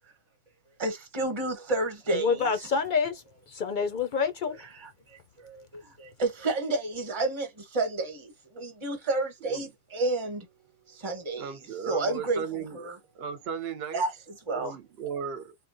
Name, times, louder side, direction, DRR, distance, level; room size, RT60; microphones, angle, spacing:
voice 1, 0.8-2.7 4.8-10.5 10.9-11.5 11.9-13.0 13.9-14.8, right 2 dB, 25° right, 1.0 m, -31 dB
voice 2, 2.1-4.5, left 5 dB, 60° left, 0.5 m, -27 dB
voice 3, 11.4-14.0 14.5-15.6, right 7 dB, 60° right, 0.8 m, -36 dB
3.1 x 2.1 x 2.5 m
omnidirectional pair, 1.3 m